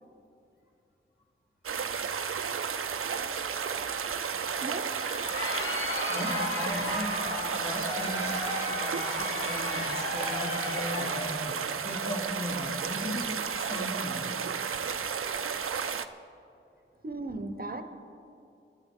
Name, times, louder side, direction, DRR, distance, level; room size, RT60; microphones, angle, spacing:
sound 1, 1.6-16.0, right 6 dB, 85° right, 0.5 m, -33 dB
voice 1, 4.6-5.0 17.0-17.8, right 2 dB, 45° right, 8 dB, 0.8 m, -37 dB
Crowd, 4.8-11.4, left 1 dB, 70° left, 2.2 m, -34 dB
voice 2, 6.1-13.3 13.6-14.3, left 1 dB, 45° left, -3 dB, 3.0 m, -38 dB
23.0 x 11.0 x 3.7 m, 2.6 s
wide cardioid pair, 65°, 21 cm